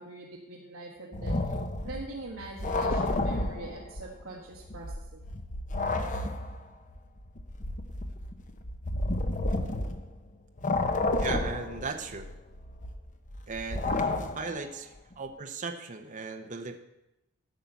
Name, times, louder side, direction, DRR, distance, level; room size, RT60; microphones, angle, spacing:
voice 1, 0.0-1.6 1.8-5.2, right 2 dB, 65° right, -4 dB, 1.7 m, -43 dB
sound 1, 1.1-4.2 4.5-10.3 10.6-14.7, left 2 dB, 35° left, 0.9 m, -31 dB
voice 2, 11.2-12.3 13.5-14.1 14.4-16.8, right 4 dB, 35° right, 5 dB, 0.9 m, -37 dB
11.5 x 5.7 x 8.2 m, 0.92 s
head